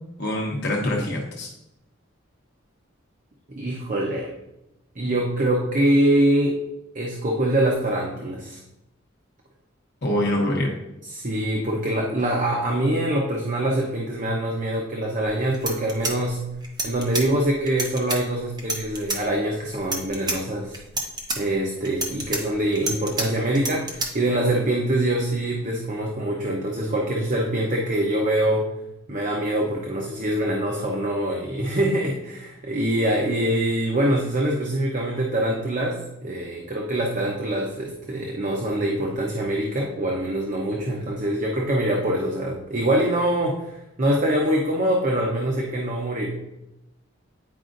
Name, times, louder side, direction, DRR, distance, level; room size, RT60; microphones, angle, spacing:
voice 1, 0.2-1.5 10.0-10.7, left 1 dB, 60° left, 0 dB, 0.9 m, -24 dB
voice 2, 3.5-4.3 5.0-6.6 6.9-8.6 11.1-16.4 16.8-20.8 21.4-28.7 29.1-43.6 44.0-46.3, right 1 dB, 40° right, -1 dB, 0.8 m, -24 dB
sound 1, 15.2-15.3 15.5-17.3 17.7-18.2 18.6-19.2 19.7-20.4 20.7-21.4 21.9-23.3 23.6-24.1, right 2 dB, 20° right, 1.0 m, -28 dB
9.5 x 4.8 x 2.5 m, 0.91 s
head